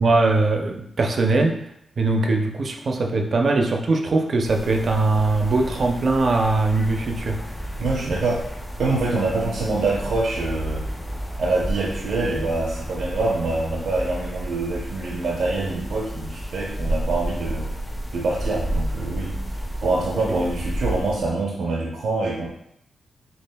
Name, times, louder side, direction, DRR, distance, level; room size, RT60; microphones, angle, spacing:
voice 1, 0.0-1.6 2.0-7.4, right 3 dB, 50° right, 3 dB, 0.5 m, -21 dB
sound 1, 4.4-21.4, right 1 dB, 10° left, 0.6 m, -31 dB
voice 2, 7.8-8.5 8.8-10.8 11.4-17.7 18.1-19.4 19.8-22.5, right 3 dB, 90° right, -2 dB, 0.7 m, -25 dB
6.6 x 2.4 x 2.2 m, 0.75 s
wide cardioid pair, 120°, 0 cm